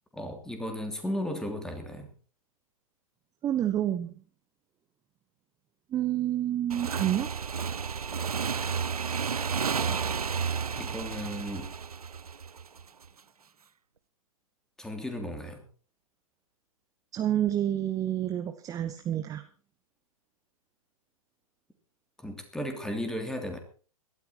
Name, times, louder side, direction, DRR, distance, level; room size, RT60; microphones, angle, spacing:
voice 1, 0.1-2.1 9.8-10.0 10.8-11.7 14.8-15.6 22.2-23.6, equal, 5° left, 5 dB, 3.0 m, -35 dB
voice 2, 3.4-4.1 5.9-7.3 17.1-19.4, right 11 dB, 20° right, 9 dB, 1.0 m, -28 dB
Motorcycle / Engine, 6.7-13.1, right 6 dB, 85° right, 0.6 m, -32 dB
17.5 x 13.0 x 4.5 m, 0.39 s
figure-of-eight pair, 120°, 19 cm